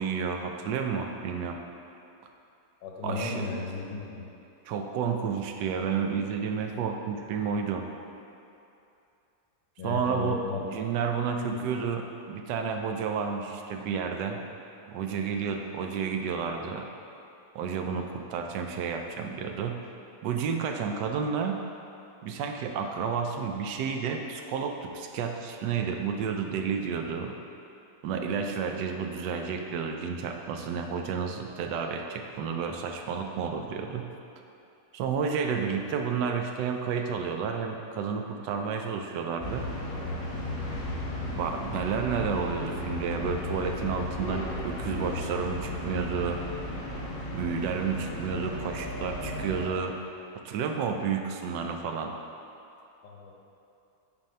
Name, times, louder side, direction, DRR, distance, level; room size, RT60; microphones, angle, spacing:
voice 1, 0.0-1.6 3.0-3.5 4.6-7.8 9.8-14.4 14.9-16.9 17.5-19.8 20.2-21.6 22.2-27.3 28.0-34.0 34.9-39.7 41.4-46.4 47.3-50.0 50.4-52.1, right 6 dB, 80° right, 4 dB, 1.2 m, -31 dB
voice 2, 2.8-4.2 9.8-10.6 11.4-11.6 53.0-53.4, left 3 dB, 85° left, -1 dB, 1.6 m, -34 dB
sound 1, 39.4-49.7, left 1 dB, 25° left, 1.1 m, -35 dB
7.2 x 2.7 x 5.4 m, 2.7 s
omnidirectional pair, 1.9 m